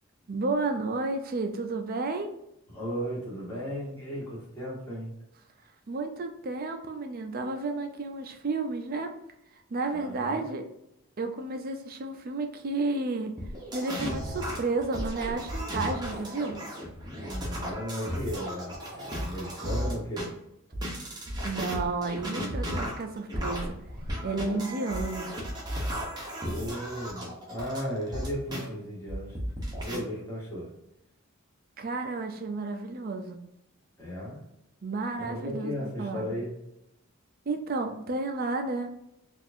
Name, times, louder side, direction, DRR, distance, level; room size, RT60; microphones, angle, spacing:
voice 1, 0.3-2.4 5.9-9.2 9.7-10.7 11.2-13.4 13.7-16.6 21.4-23.8 24.2-25.3 31.8-33.4 34.8-36.3 37.5-38.9, right 3 dB, 40° right, 6 dB, 0.4 m, -32 dB
voice 2, 2.7-5.1 9.9-10.4 17.2-20.3 26.4-29.4 29.8-30.7 34.0-34.4 35.2-36.5, equal, 10° left, -8 dB, 1.3 m, -35 dB
sound 1, 13.4-20.3 20.7-28.6 29.1-30.0, equal, 20° right, 0.8 m, -34 dB
4.2 x 2.5 x 2.6 m, 0.81 s
head